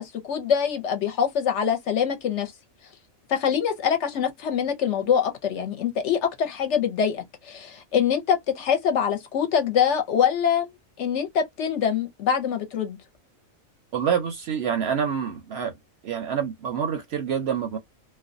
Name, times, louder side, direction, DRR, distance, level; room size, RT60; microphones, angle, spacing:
voice 1, 0.0-2.5 3.3-10.7 11.0-13.0, left 8 dB, 65° left, 0.8 m, -24 dB
voice 2, 13.9-15.7 16.0-17.8, right 7 dB, 65° right, 0.7 m, -27 dB
2.4 x 2.1 x 2.5 m
omnidirectional pair, 1.4 m